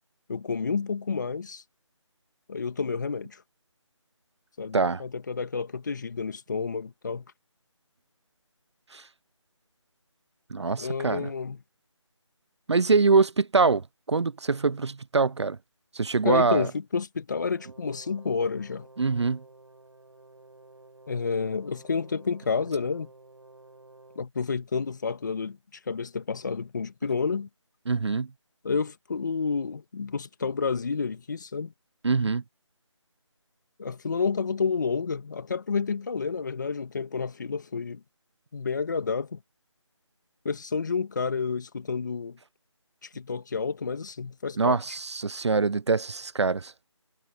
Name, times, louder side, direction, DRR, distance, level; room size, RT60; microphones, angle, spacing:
voice 1, 0.3-1.6 2.5-3.4 4.6-7.2 10.8-11.6 16.2-18.9 21.1-23.1 24.2-25.6 25.9-27.5 28.6-31.7 33.8-38.0 38.5-39.4 40.4-42.4 43.0-44.8, left 5 dB, 35° left, 2.2 m, -30 dB
voice 2, 10.5-11.3 12.7-15.6 15.9-16.7 19.0-19.4 27.9-28.3 32.0-32.4 44.6-46.7, right 4 dB, 60° right, 0.6 m, -24 dB
Brass instrument, 17.4-24.3, right 2 dB, 80° right, 6.9 m, -52 dB
figure-of-eight pair, 170°, 16 cm